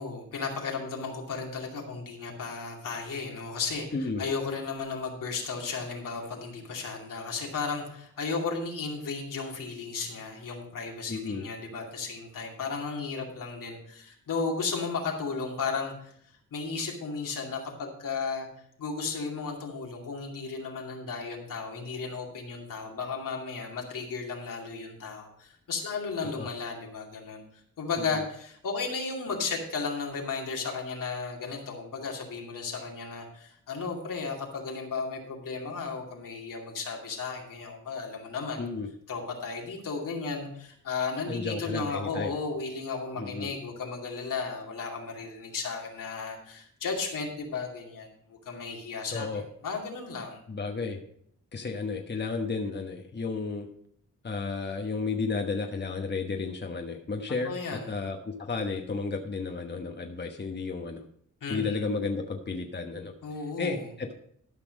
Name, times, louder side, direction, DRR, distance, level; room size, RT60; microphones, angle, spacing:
voice 1, 0.0-16.1 16.5-18.5 18.8-27.4 27.8-38.6 39.1-49.3 49.6-50.4 57.5-57.9 61.4-61.8 63.2-63.9, left 4 dB, 80° left, -1 dB, 2.5 m, -34 dB
voice 2, 3.9-4.2 11.1-11.4 26.4-26.5 28.0-28.2 38.6-38.9 41.3-42.3 43.2-43.5 49.1-49.4 50.5-51.0 51.5-53.7 54.2-57.5 57.9-61.0 61.5-63.1 63.6-64.1, left 4 dB, 35° left, 3 dB, 1.2 m, -32 dB
12.5 x 5.8 x 5.2 m, 0.66 s
cardioid pair, 85°, 32 cm